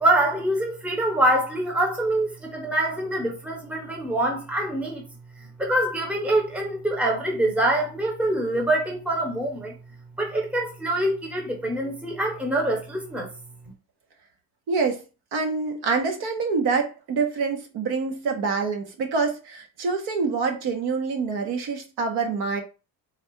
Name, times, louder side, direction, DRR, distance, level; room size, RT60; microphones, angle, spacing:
voice 1, 0.0-5.0 5.6-9.7 10.2-13.3, right 1 dB, 5° right, 0.9 m, -25 dB
voice 2, 14.7-15.0 15.3-22.6, right 4 dB, 70° right, 1.2 m, -26 dB
4.1 x 2.4 x 4.5 m
cardioid pair, 170°, 41 cm